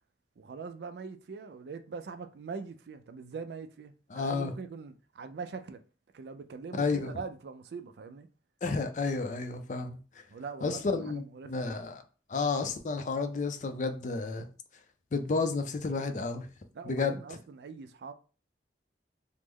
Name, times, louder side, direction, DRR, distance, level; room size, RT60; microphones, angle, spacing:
voice 1, 0.4-5.8 6.1-8.3 10.3-10.8 11.1-11.8 16.7-18.1, right 5 dB, 65° right, 0.3 m, -42 dB
voice 2, 4.1-4.5 6.8-7.1 8.6-10.0 10.6-12.0 12.3-14.5 15.1-16.5 16.8-17.2, left 4 dB, 40° left, 0.4 m, -31 dB
3.1 x 2.0 x 3.5 m
head